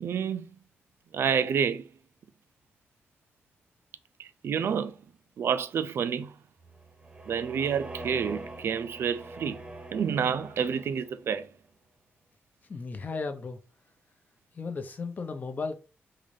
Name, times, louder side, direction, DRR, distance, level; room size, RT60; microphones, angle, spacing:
voice 1, 0.0-0.5 1.1-1.9 4.2-5.0 5.4-6.3 7.3-9.6 9.9-11.5, right 7 dB, 65° right, 0.4 m, -29 dB
sound 1, 6.6-11.2, right 2 dB, 25° right, 0.8 m, -44 dB
voice 2, 12.7-13.6 14.5-15.8, left 4 dB, 40° left, 0.6 m, -35 dB
3.8 x 2.6 x 3.2 m
cardioid pair, 90°, 4 cm